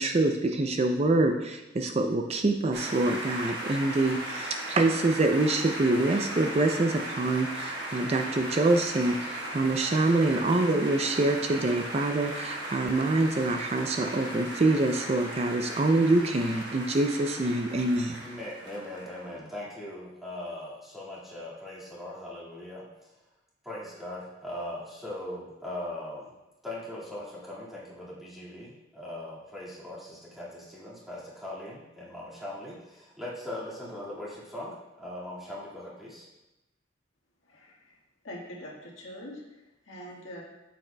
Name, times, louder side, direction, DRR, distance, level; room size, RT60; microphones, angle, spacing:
voice 1, 0.0-18.2, right 2 dB, 30° right, 5 dB, 0.4 m, -25 dB
sound 1, 2.7-19.4, right 1 dB, 55° right, 1.4 m, -37 dB
voice 2, 18.2-22.9 23.6-26.3 26.6-36.3, left 1 dB, ahead, -8 dB, 1.9 m, -40 dB
voice 3, 38.2-39.4 39.9-40.4, equal, 85° left, -3 dB, 1.7 m, -42 dB
9.0 x 7.5 x 2.2 m, 0.98 s
head